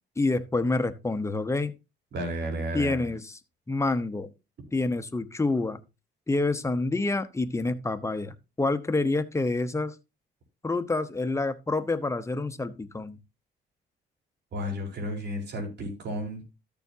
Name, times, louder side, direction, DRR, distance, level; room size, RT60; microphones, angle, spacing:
voice 1, 0.2-1.7 2.7-3.4 3.7-4.3 4.7-5.8 6.3-10.0 10.6-13.2, left 2 dB, 15° left, 1.0 m, -27 dB
voice 2, 2.1-3.1 14.5-16.4, equal, 60° right, 4.3 m, -32 dB
13.0 x 7.1 x 2.7 m
cardioid pair, 90°, 20 cm